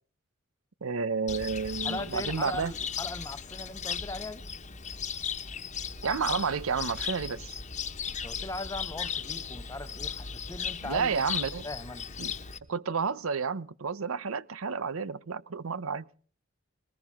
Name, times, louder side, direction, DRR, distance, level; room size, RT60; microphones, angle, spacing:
voice 1, 0.8-2.7 6.0-7.6 10.8-11.7 12.2-12.3 12.7-16.1, right 5 dB, 80° right, 0.7 m, -31 dB
Cricket, 1.3-12.6, left 7 dB, 35° left, 1.2 m, -36 dB
voice 2, 1.8-4.4 8.1-11.2 11.6-12.1, left 2 dB, 15° left, 0.9 m, -39 dB
20.5 x 19.5 x 3.6 m
head